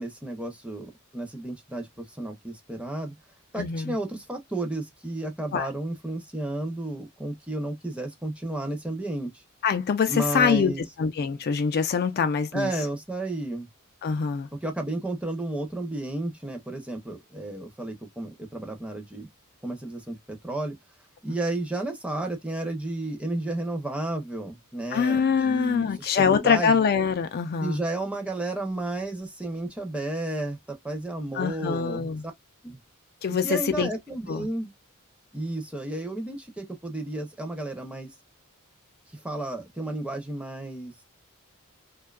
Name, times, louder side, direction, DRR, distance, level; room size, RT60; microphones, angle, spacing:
voice 1, 0.0-3.1 3.5-9.4 10.1-10.8 12.5-13.7 14.6-19.3 19.6-20.8 21.2-26.7 27.6-32.1 32.6-32.8 33.4-34.7 35.3-38.1 39.1-40.9, right 2 dB, 5° right, 0.6 m, -32 dB
voice 2, 3.6-4.0 5.5-5.7 9.6-10.7 11.0-12.7 14.0-14.5 24.9-27.8 31.3-32.3 33.2-33.9 34.3-34.5, left 6 dB, 45° left, 0.3 m, -24 dB
2.7 x 2.3 x 2.2 m
head